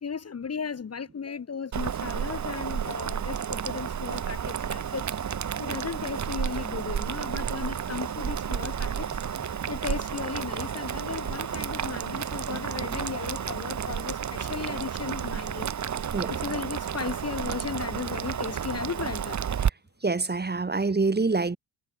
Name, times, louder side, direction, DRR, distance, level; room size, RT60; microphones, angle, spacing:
voice 1, 0.0-5.1 5.6-9.4 9.7-15.7 16.3-19.4, left 6 dB, 30° left, 1.4 m, -35 dB
Boiling, 1.7-19.7, right 8 dB, 35° right, 1.2 m, -31 dB
sound 1, 8.8-14.4, left 8 dB, 50° left, 5.8 m, -53 dB
voice 2, 20.0-21.6, right 3 dB, 20° right, 1.7 m, -25 dB
hypercardioid pair, 40°, 47 cm